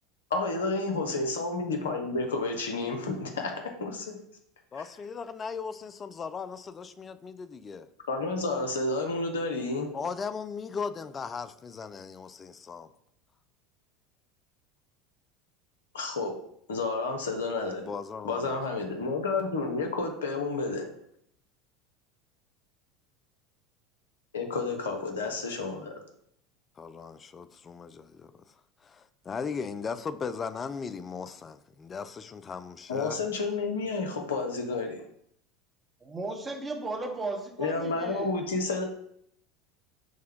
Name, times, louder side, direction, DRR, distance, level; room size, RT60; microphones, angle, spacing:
voice 1, 0.3-3.5 3.8-4.2 4.7-4.8 8.1-9.9 15.9-16.3 16.7-17.9 18.2-20.8 24.3-25.9 32.9-35.0 37.6-38.8, left 3 dB, 75° left, 0.8 m, -30 dB
voice 2, 4.7-7.9 9.9-12.9 17.7-18.5 26.8-28.3 28.8-33.2, left 5 dB, 30° left, 0.3 m, -37 dB
voice 3, 36.0-38.3, right 3 dB, 20° right, 0.9 m, -35 dB
6.2 x 2.2 x 3.6 m
figure-of-eight pair, 75°, 0 cm